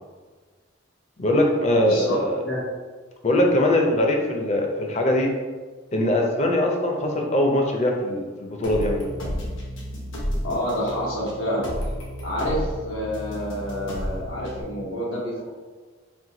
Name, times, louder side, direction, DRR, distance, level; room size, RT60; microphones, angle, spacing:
voice 1, 1.2-2.4 3.2-5.3 5.9-9.2, left 1 dB, 35° left, 1 dB, 0.6 m, -22 dB
voice 2, 1.8-2.2 2.4-2.6 10.4-11.7 12.2-15.5, equal, 85° left, -5 dB, 1.3 m, -28 dB
sound 1, 8.6-14.6, equal, 70° left, 1.0 m, -32 dB
4.5 x 2.2 x 3.8 m, 1.4 s
head